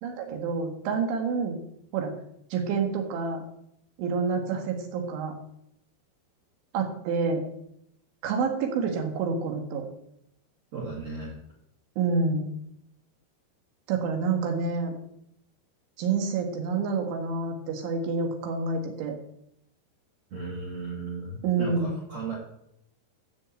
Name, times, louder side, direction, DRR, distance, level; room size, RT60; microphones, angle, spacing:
voice 1, 0.0-1.6 1.9-2.1 2.5-3.4 4.0-5.3 6.7-7.5 8.2-9.9 12.0-12.6 13.9-14.9 16.0-19.2 21.4-22.0, right 4 dB, 80° right, 4 dB, 4.3 m, -28 dB
voice 2, 10.7-11.4 20.3-22.3, right 3 dB, 40° right, -5 dB, 3.5 m, -36 dB
13.5 x 5.6 x 7.8 m, 0.75 s
omnidirectional pair, 5.4 m